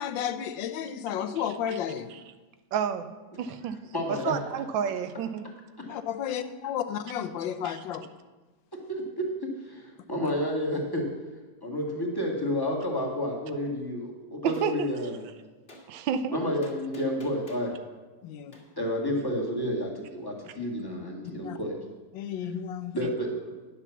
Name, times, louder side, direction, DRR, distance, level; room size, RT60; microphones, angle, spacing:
voice 1, 0.0-2.1 5.9-8.0 18.2-18.6 21.4-21.6 22.1-23.0, left 9 dB, 85° left, 10 dB, 1.4 m, -32 dB
voice 2, 2.7-3.1 3.4-3.8 4.1-5.5 7.6-7.8 14.4-14.7 15.9-16.4, right 8 dB, 90° right, 10 dB, 1.5 m, -30 dB
voice 3, 3.9-4.3 5.8-5.9 8.7-11.1 11.6-15.2 16.3-17.7 18.8-21.8 22.9-23.5, equal, 10° left, -1 dB, 1.7 m, -30 dB
Gunshot gunfire, 14.5-14.7 15.7-15.8 16.6-17.7 18.5-18.6, left 1 dB, 30° left, 2.2 m, -49 dB
10.0 x 7.1 x 7.1 m, 1.2 s
omnidirectional pair, 2.0 m